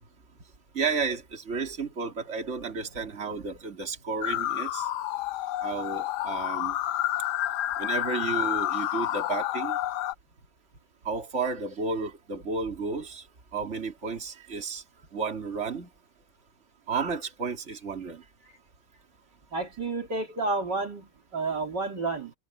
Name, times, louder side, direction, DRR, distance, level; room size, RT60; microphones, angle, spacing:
voice 1, 0.7-4.9 5.6-6.8 7.8-9.8 11.0-13.2 13.5-14.8 15.1-15.9 16.9-18.2, right 4 dB, 30° right, 3.2 m, -32 dB
sound 1, 4.2-10.1, left 13 dB, 70° left, 1.0 m, -29 dB
voice 2, 19.5-22.3, right 3 dB, 55° right, 3.4 m, -30 dB
omnidirectional pair, 2.3 m